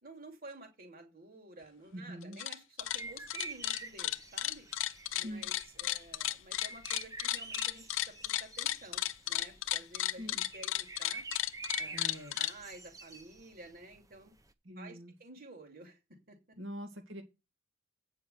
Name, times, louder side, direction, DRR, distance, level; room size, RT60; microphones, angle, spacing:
voice 1, 0.0-4.7 5.1-11.2 11.8-12.0 12.4-14.3 14.8-16.0 16.3-16.4, right 2 dB, 50° right, 2.8 m, -52 dB
voice 2, 1.9-2.4 5.2-5.5 10.2-10.4 11.9-12.4 14.6-15.1 16.6-17.2, equal, 85° right, 2.2 m, -44 dB
sound 1, 2.2-2.5 2.8-12.5, left 13 dB, 75° left, 0.6 m, -34 dB
sound 2, 2.8-14.5, right 3 dB, 15° right, 0.7 m, -48 dB
8.7 x 5.6 x 7.9 m
head